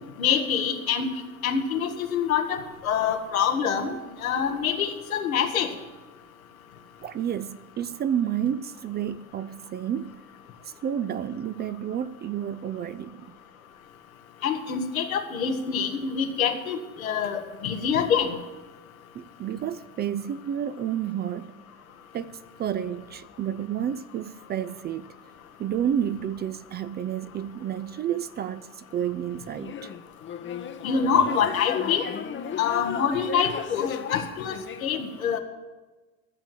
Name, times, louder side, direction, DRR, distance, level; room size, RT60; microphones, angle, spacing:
voice 1, 0.2-1.1 1.4-3.9 4.2-5.7 14.4-18.3 30.8-32.0 32.6-35.4, left 7 dB, 85° left, 1.4 m, -25 dB
voice 2, 7.0-10.1 10.8-13.3 19.1-21.6 22.1-25.1 25.6-29.9, right 9 dB, 25° right, 0.4 m, -30 dB
sound 1, 29.5-34.9, left 8 dB, 30° left, 0.8 m, -34 dB
13.5 x 7.3 x 7.5 m
hypercardioid pair, 75°, 41 cm